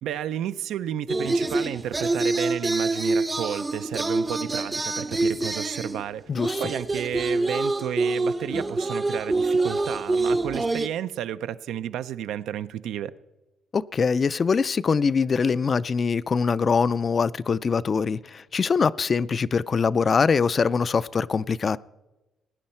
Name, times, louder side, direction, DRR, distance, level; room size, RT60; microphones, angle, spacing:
voice 1, 0.0-6.2 6.6-13.1, right 10 dB, 85° right, 0.4 m, -32 dB
sound 1, 1.1-6.0 6.4-10.9, right 2 dB, 20° right, 0.5 m, -26 dB
voice 2, 6.3-6.6 13.7-21.8, left 5 dB, 40° left, 0.3 m, -23 dB
19.5 x 9.7 x 4.3 m
cardioid pair, 90°, 0 cm